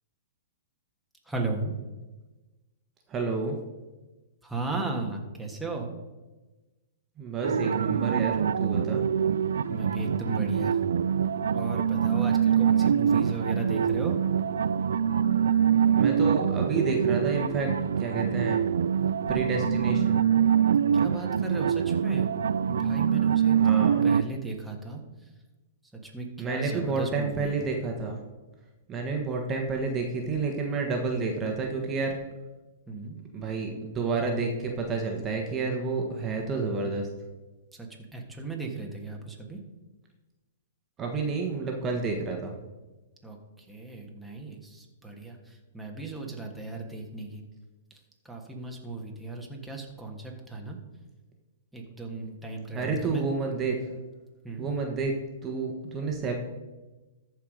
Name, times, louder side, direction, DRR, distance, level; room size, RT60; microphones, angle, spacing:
voice 1, 1.2-1.7 4.4-5.9 9.7-10.8 11.5-14.2 20.9-22.3 22.7-25.3 25.8-27.7 32.9-33.2 37.7-39.6 43.2-47.4 47.9-50.8 51.7-53.2 54.4-54.7, right 3 dB, ahead, -1 dB, 1.6 m, -36 dB
voice 2, 3.1-3.6 7.2-9.0 15.9-18.7 19.3-20.2 23.6-24.0 26.4-28.2 28.9-32.2 33.3-37.1 41.0-42.5 52.7-53.9 54.6-55.1 55.4-56.3, right 4 dB, 20° right, 1 dB, 1.3 m, -30 dB
sound 1, 7.4-24.2, right 8 dB, 85° right, 0.3 m, -24 dB
14.0 x 4.7 x 5.1 m, 1.1 s
hypercardioid pair, 135°, 0 cm